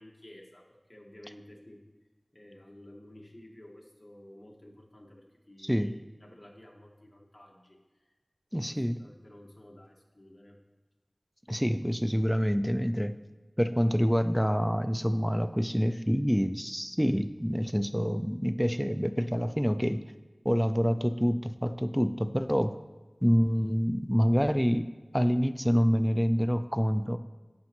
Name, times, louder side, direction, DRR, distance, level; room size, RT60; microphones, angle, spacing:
voice 1, 0.0-1.8 2.3-7.8 8.7-10.6, left 1 dB, 30° left, 0 dB, 1.4 m, -52 dB
voice 2, 5.6-5.9 8.5-9.0 11.5-13.2 13.6-20.0 20.4-22.8 23.2-24.9 25.1-27.2, equal, ahead, 10 dB, 0.4 m, -27 dB
13.5 x 5.3 x 3.0 m, 1.3 s
wide cardioid pair, 50°, 0 cm